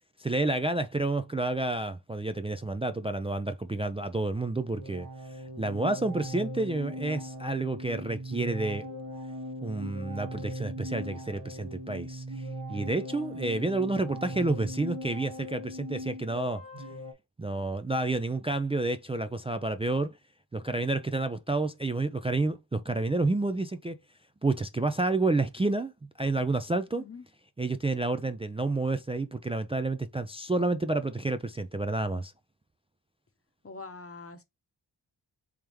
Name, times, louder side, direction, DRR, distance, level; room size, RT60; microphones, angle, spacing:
voice 1, 0.2-5.1 5.6-8.9 9.6-16.6 17.4-20.1 20.5-24.0 24.4-25.9 26.2-27.0 27.6-32.3, right 2 dB, 15° right, 0.3 m, -29 dB
sound 1, 4.8-17.1, equal, 50° right, 1.2 m, -39 dB
voice 2, 33.6-34.4, left 4 dB, 30° left, 0.9 m, -43 dB
3.5 x 3.3 x 3.0 m
cardioid pair, 45°, 44 cm